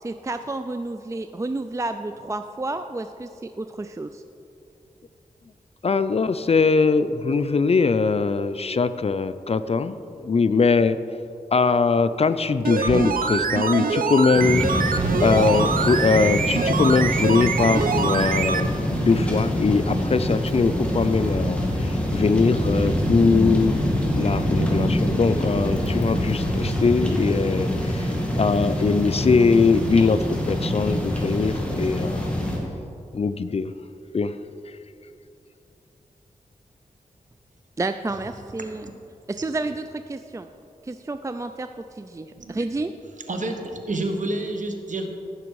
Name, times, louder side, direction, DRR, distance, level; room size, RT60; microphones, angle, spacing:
voice 1, 0.0-4.2 37.8-38.9 39.3-40.5 40.8-42.9, right 2 dB, 20° right, 9 dB, 0.4 m, -30 dB
voice 2, 5.8-11.0 11.5-14.7 15.2-23.7 24.1-30.2 30.5-32.3 33.1-33.7 34.1-34.3, left 4 dB, 45° left, 13 dB, 0.4 m, -21 dB
sound 1, 12.6-18.7 19.0-19.1, right 5 dB, 75° right, 0.5 m, -25 dB
sound 2, 14.3-32.6, equal, 10° left, 2.2 m, -25 dB
voice 3, 43.3-45.1, right 2 dB, 60° right, 4 dB, 1.2 m, -29 dB
15.0 x 6.0 x 4.7 m, 2.6 s
cardioid pair, 60°, 15 cm